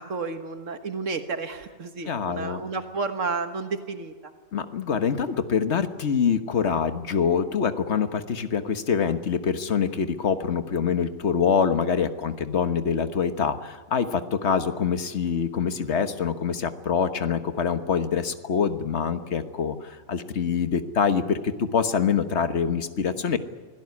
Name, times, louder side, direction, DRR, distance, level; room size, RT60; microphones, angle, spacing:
voice 1, 0.0-4.1, right 4 dB, 90° right, 7 dB, 1.8 m, -31 dB
voice 2, 2.0-2.6 4.5-23.4, left 6 dB, 65° left, 9 dB, 1.5 m, -25 dB
25.0 x 17.5 x 9.7 m, 1.4 s
omnidirectional pair, 1.3 m